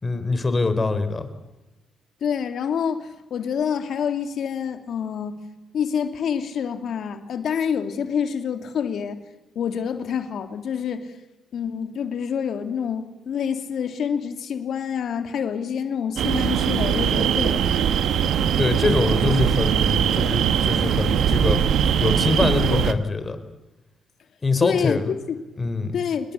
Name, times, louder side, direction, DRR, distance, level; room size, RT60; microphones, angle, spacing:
voice 1, 0.0-1.3 18.6-21.6 22.0-23.4 24.4-25.1 25.6-26.0, left 3 dB, 25° left, 10 dB, 4.1 m, -24 dB
voice 2, 2.2-5.4 5.7-9.2 9.5-11.1 11.5-17.7 24.6-25.0 25.3-25.4 25.9-26.3, left 7 dB, 65° left, 6 dB, 3.1 m, -27 dB
sound 1, 16.2-22.9, right 8 dB, 75° right, 1.3 m, -21 dB
28.0 x 21.0 x 8.6 m, 1.0 s
cardioid pair, 90°, 0 cm